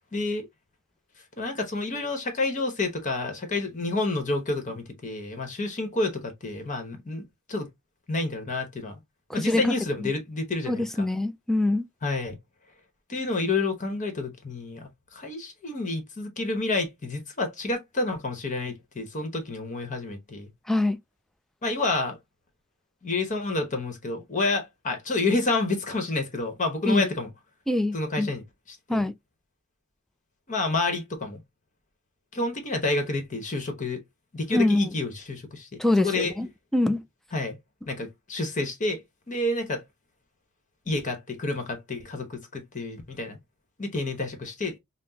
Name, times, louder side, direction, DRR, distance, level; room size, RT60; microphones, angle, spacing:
voice 1, 0.1-0.5 1.4-7.7 8.1-9.0 9.3-11.0 12.0-12.4 13.1-20.5 21.6-22.2 23.0-27.3 27.9-29.1 30.5-31.4 32.3-34.0 34.3-35.7 36.0-36.3 37.3-37.6 37.9-39.0 39.3-39.8 40.9-43.4 43.8-44.8, left 2 dB, 35° left, 1.0 m, -29 dB
voice 2, 9.3-9.7 10.0-10.1 10.7-11.8 20.7-21.0 26.9-27.1 27.7-28.3 28.9-29.1 34.5-34.9 35.8-36.5 36.7-37.0, left 2 dB, ahead, 0.3 m, -24 dB
5.8 x 2.0 x 2.7 m
head